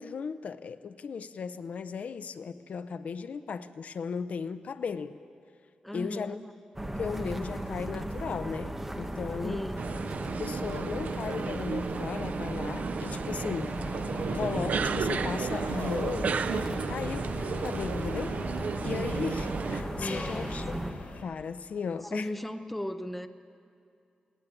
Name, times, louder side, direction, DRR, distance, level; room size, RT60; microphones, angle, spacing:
voice 1, 0.0-5.2 5.9-6.4 7.0-9.6 10.4-13.8 14.3-17.3 17.6-18.3 18.8-20.8 21.2-22.3, left 6 dB, 60° left, 12 dB, 0.7 m, -36 dB
voice 2, 5.8-6.5 9.4-9.9 20.0-20.9 22.0-23.3, left 1 dB, 5° left, 7 dB, 0.7 m, -36 dB
sound 1, 6.7-20.9, right 1 dB, 10° right, 1.3 m, -36 dB
sound 2, 9.8-19.8, right 5 dB, 65° right, 0.7 m, -33 dB
sound 3, 13.6-21.2, left 3 dB, 85° left, 3.1 m, -44 dB
20.5 x 18.5 x 9.2 m, 2.5 s
wide cardioid pair, 175°, 3 cm